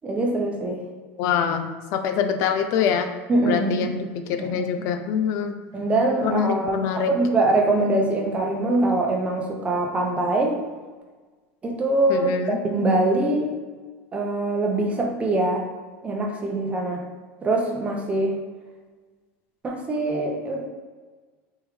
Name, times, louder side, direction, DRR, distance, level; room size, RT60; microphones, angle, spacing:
voice 1, 0.0-0.8 3.3-3.9 4.4-4.6 5.7-10.5 11.6-13.5 14.1-15.6 16.0-17.0 17.4-18.4 19.6-20.6, right 2 dB, 20° right, 0 dB, 0.7 m, -23 dB
voice 2, 1.2-3.1 3.5-5.5 6.2-7.1 12.1-12.6, left 7 dB, 55° left, 7 dB, 0.4 m, -25 dB
3.6 x 3.1 x 3.2 m, 1.4 s
supercardioid pair, 130°, 6 cm